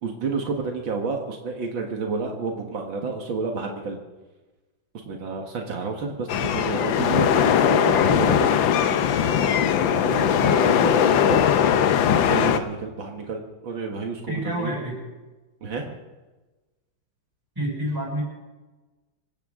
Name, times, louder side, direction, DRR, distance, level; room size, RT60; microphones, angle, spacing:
voice 1, 0.0-4.0 5.1-8.6 9.4-11.5 12.3-14.8 15.6-15.9, right 4 dB, 80° right, 2 dB, 2.4 m, -30 dB
sound 1, 6.3-12.6, left 8 dB, 80° left, 1.6 m, -20 dB
voice 2, 14.3-15.0 17.5-18.2, equal, 10° right, -4 dB, 6.7 m, -28 dB
25.5 x 14.5 x 3.7 m, 1.2 s
omnidirectional pair, 2.1 m